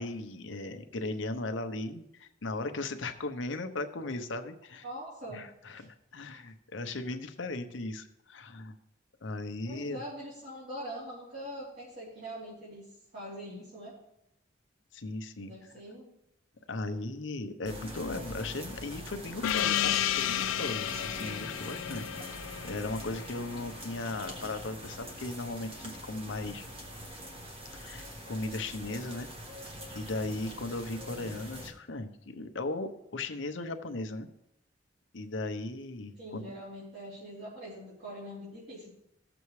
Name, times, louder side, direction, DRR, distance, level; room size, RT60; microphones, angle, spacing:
voice 1, 0.0-4.9 5.3-8.7 9.2-10.0 14.9-15.7 16.7-22.0 22.6-26.6 27.7-29.3 29.9-34.3 35.1-36.6, left 2 dB, 75° left, 7 dB, 0.8 m, -37 dB
voice 2, 4.8-5.4 5.7-5.9 9.6-12.9 13.1-13.9 15.4-16.0 36.2-38.9, equal, 55° right, -11 dB, 3.5 m, -43 dB
sound 1, 17.6-31.7, equal, 30° right, 1.4 m, -44 dB
Gong, 19.4-24.5, left 12 dB, 90° left, 0.3 m, -32 dB
16.5 x 7.0 x 3.2 m, 0.82 s
head